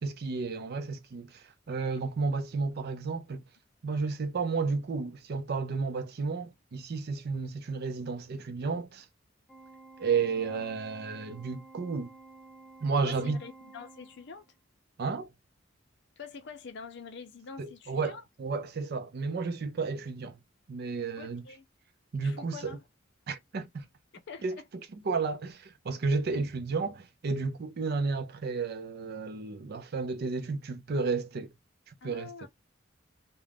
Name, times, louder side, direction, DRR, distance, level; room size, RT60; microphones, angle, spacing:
voice 1, 0.0-3.4 3.8-9.1 10.0-12.1 12.8-13.4 15.0-15.3 17.6-20.4 20.7-21.4 22.1-22.8 23.3-23.9 24.4-24.6 24.9-31.5 31.9-32.5, right 4 dB, 55° right, 0.4 m, -32 dB
Organ, 9.5-14.5, right 3 dB, ahead, 0.7 m, -52 dB
voice 2, 13.0-14.5 16.2-18.2 21.2-21.6 22.1-22.8 24.3-24.7 32.0-32.5, left 5 dB, 60° left, 0.5 m, -45 dB
2.4 x 2.1 x 3.3 m
head